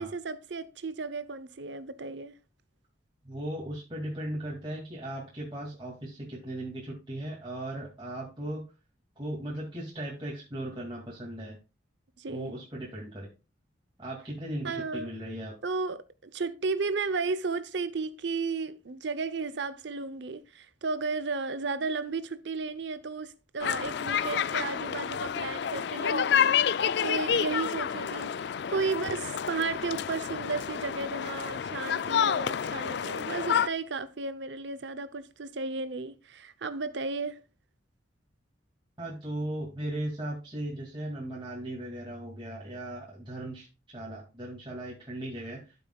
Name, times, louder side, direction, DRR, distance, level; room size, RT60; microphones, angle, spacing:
voice 1, 0.0-2.3 12.2-12.5 14.6-15.1 15.6-37.4, right 4 dB, 70° right, 0.7 m, -34 dB
voice 2, 3.2-8.6 9.2-11.6 12.3-13.3 14.0-15.5 39.0-45.7, right 1 dB, 25° right, 2.3 m, -37 dB
sound 1, 23.6-33.7, left 8 dB, 60° left, 0.4 m, -29 dB
12.0 x 6.9 x 2.3 m
head